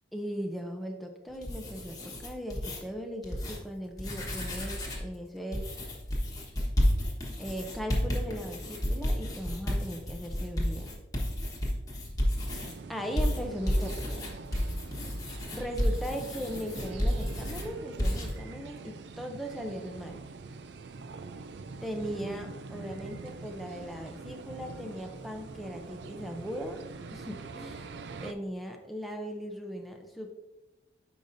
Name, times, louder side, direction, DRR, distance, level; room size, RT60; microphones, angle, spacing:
voice 1, 0.1-5.8 7.4-10.9 12.9-14.4 15.5-20.2 21.8-26.8 27.1-27.9 28.2-30.3, equal, ahead, 2 dB, 0.6 m, -38 dB
sound 1, 1.3-2.8 3.2-3.6 3.9-5.1 5.5-12.7 13.2-17.7 18.0-18.3, equal, 20° left, 1.3 m, -31 dB
sound 2, 12.5-28.3, right 4 dB, 65° right, 0.4 m, -44 dB
9.1 x 5.2 x 2.7 m, 1.0 s
head